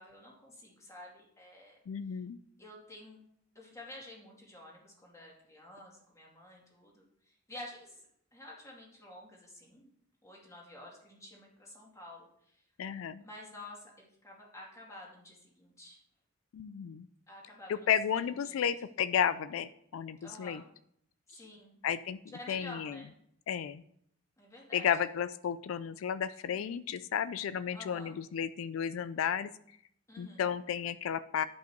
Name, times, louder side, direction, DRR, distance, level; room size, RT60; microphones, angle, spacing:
voice 1, 0.0-1.8 2.6-3.2 3.5-8.0 8.3-9.9 10.2-12.6 13.2-16.0 17.3-17.9 18.2-18.7 20.2-20.6 21.3-21.8 22.3-23.1 24.4-24.9 26.5-26.7 27.7-28.2 30.1-30.5, left 1 dB, 15° left, -3 dB, 2.3 m, -50 dB
voice 2, 1.9-2.4 12.8-13.2 16.5-17.1 17.7-20.6 21.8-22.2 22.5-23.0 23.5-23.8 24.7-29.5 30.2-31.4, left 8 dB, 85° left, 14 dB, 0.3 m, -33 dB
10.5 x 5.5 x 4.5 m, 0.70 s
head